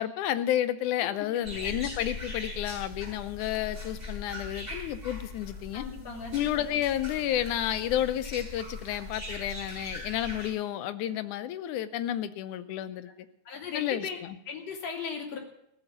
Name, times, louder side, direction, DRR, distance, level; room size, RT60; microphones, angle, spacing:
voice 1, 0.0-5.8 6.3-13.1 13.7-14.4, left 11 dB, 85° left, 12 dB, 2.2 m, -31 dB
sound 1, 1.4-10.5, left 2 dB, 10° right, 5.4 m, -40 dB
voice 2, 5.7-6.3 13.4-14.2 14.5-15.4, left 5 dB, 60° left, 1 dB, 3.4 m, -37 dB
16.0 x 7.0 x 9.3 m, 0.77 s
omnidirectional pair, 3.4 m